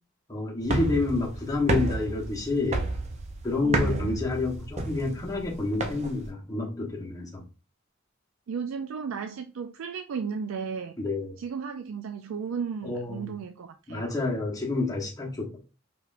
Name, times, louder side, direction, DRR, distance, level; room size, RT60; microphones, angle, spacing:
voice 1, 0.3-2.9 3.4-7.4 11.0-11.3 12.8-13.3 13.9-15.6, left 3 dB, 20° left, 1.0 m, -29 dB
sound 1, 0.6-6.3, right 2 dB, 35° right, 0.5 m, -31 dB
voice 2, 3.6-4.2 8.5-10.9 11.4-14.2, right 6 dB, 90° right, 0.4 m, -34 dB
4.8 x 3.0 x 2.5 m
head